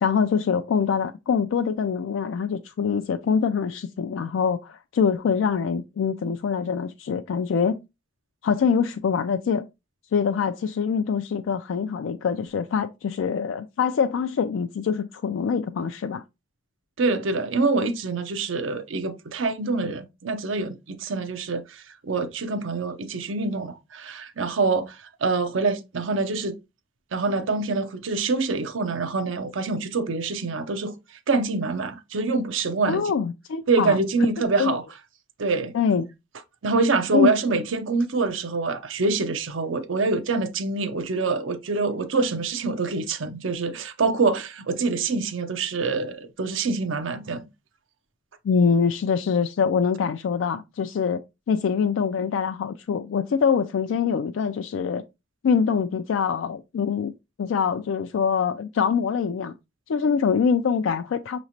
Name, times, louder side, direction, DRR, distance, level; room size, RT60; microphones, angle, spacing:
voice 1, 0.0-7.8 8.4-9.6 10.1-16.2 32.9-34.0 34.6-34.8 35.7-36.1 37.1-37.3 48.4-55.0 55.4-57.1 57.4-59.5 59.9-61.4, left 6 dB, 85° left, 0.3 m, -24 dB
voice 2, 17.0-26.6 27.1-30.9 31.3-33.0 33.7-34.8 35.4-35.7 36.6-47.4, right 3 dB, 80° right, 0.6 m, -25 dB
5.7 x 3.0 x 2.7 m
head